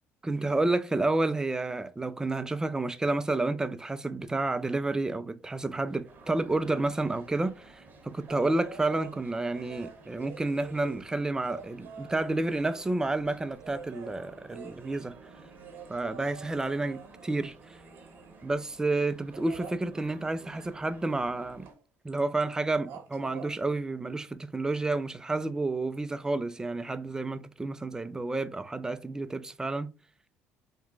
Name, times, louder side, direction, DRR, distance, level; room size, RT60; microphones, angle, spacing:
voice 1, 0.2-15.2 15.9-17.8 18.4-21.7 22.0-29.9, right 2 dB, 15° right, 0.3 m, -30 dB
sound 1, 6.0-21.7, right 3 dB, 40° right, 0.9 m, -54 dB
sound 2, 8.3-9.2 9.5-13.1 13.6-18.4 19.3-19.8 21.6-21.8 22.1-22.5 22.8-23.5 24.9-25.0, right 6 dB, 75° right, 0.8 m, -47 dB
2.9 x 2.2 x 3.8 m
cardioid pair, 95°, 5 cm